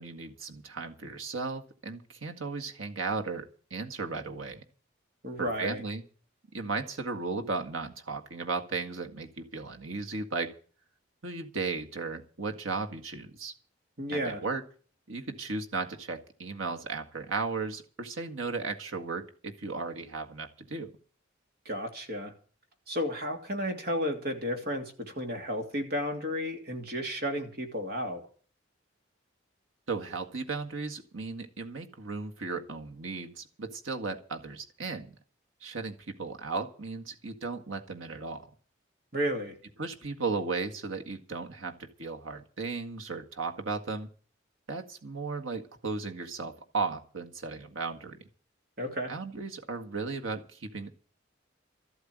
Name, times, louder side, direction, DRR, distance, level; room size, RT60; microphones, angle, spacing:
voice 1, 0.0-4.6 5.4-6.0 6.5-10.5 11.2-13.5 14.1-14.6 15.1-20.9 29.9-35.1 35.6-38.4 39.8-44.1 44.7-48.2 49.1-50.9, right 4 dB, 90° right, 4 dB, 1.8 m, -35 dB
voice 2, 5.2-5.8 14.0-14.4 21.6-22.3 22.9-28.2 39.1-39.5 48.8-49.1, equal, 50° right, 4 dB, 2.9 m, -32 dB
13.5 x 8.1 x 9.4 m, 0.42 s
head